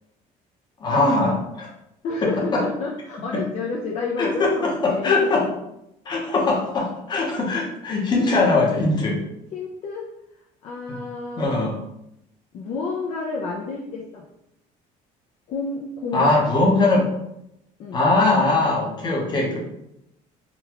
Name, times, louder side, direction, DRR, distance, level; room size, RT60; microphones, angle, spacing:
voice 1, 0.8-1.7 2.2-2.6 4.2-5.4 6.1-9.2 10.9-11.0 11.4-11.8 16.1-17.1 17.9-19.6, left 2 dB, 30° left, -1 dB, 0.8 m, -21 dB
voice 2, 2.0-5.3 9.5-10.1 10.6-11.7 12.5-14.2 15.5-16.4 17.8-18.0, left 3 dB, 50° left, -2 dB, 0.5 m, -30 dB
3.8 x 2.2 x 2.9 m, 0.83 s
cardioid pair, 150°, 15 cm